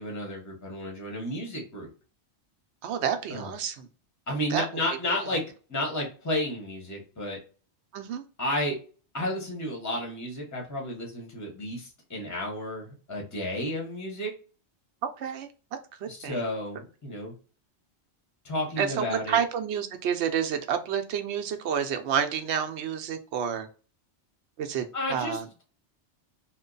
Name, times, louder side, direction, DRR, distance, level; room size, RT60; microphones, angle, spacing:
voice 1, 0.0-1.9 3.3-3.5 4.3-5.4 5.7-7.4 8.4-8.8 9.1-14.3 16.1-17.3 18.4-19.4 24.9-25.4, left 1 dB, 15° left, 0 dB, 0.9 m, -32 dB
voice 2, 2.8-3.9 4.5-4.7 5.1-5.3 7.9-8.3 15.0-15.5 16.0-16.4 18.8-23.7 24.6-25.5, right 8 dB, 75° right, 7 dB, 0.8 m, -29 dB
3.0 x 2.2 x 3.8 m, 0.37 s
omnidirectional pair, 1.2 m